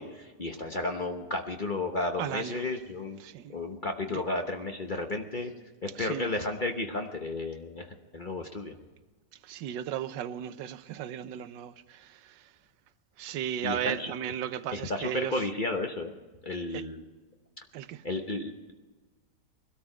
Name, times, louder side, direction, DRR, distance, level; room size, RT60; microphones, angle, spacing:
voice 1, 0.0-3.2 3.5-5.5 5.8-7.9 8.1-8.7 13.6-14.1 14.7-16.1 16.4-17.0 18.0-18.7, left 2 dB, 35° left, 0.8 m, -33 dB
voice 2, 2.2-2.7 3.2-3.5 4.1-4.2 5.9-6.3 9.4-12.5 13.2-15.4 16.7-16.8 17.7-18.0, right 10 dB, 90° right, 1.4 m, -35 dB
21.0 x 13.0 x 4.9 m
omnidirectional pair, 1.9 m